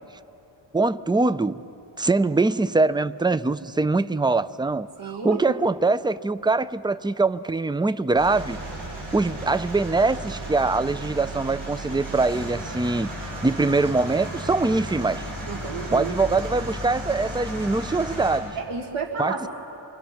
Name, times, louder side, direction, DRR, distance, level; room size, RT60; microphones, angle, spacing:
voice 1, 0.7-1.6 2.0-4.9 5.2-8.6 9.1-13.1 13.4-15.3 15.9-18.6 19.2-19.5, right 3 dB, 10° right, 0.4 m, -23 dB
voice 2, 5.0-5.6 15.5-16.2 18.5-19.5, right 4 dB, 85° right, 1.8 m, -31 dB
sound 1, 8.2-18.4, right 1 dB, 45° right, 6.8 m, -34 dB
25.5 x 25.0 x 5.8 m
wide cardioid pair, 85°, 48 cm